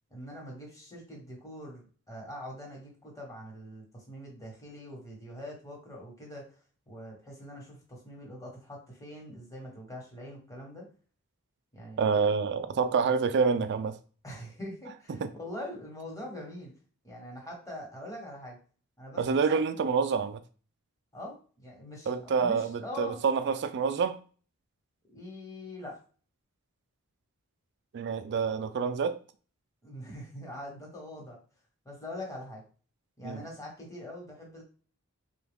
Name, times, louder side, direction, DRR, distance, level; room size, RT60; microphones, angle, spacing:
voice 1, 0.1-6.5 6.9-10.9 11.7-12.1 14.2-16.7 17.0-18.6 19.0-19.6 21.1-23.2 25.1-26.0 29.8-31.4 31.8-32.6 33.2-34.6, left 1 dB, 15° left, 1.2 m, -43 dB
voice 2, 12.0-14.0 15.2-15.3 19.2-20.4 22.1-24.2 27.9-29.2 33.2-33.4, right 5 dB, 50° right, 0.4 m, -27 dB
3.3 x 2.3 x 3.4 m
head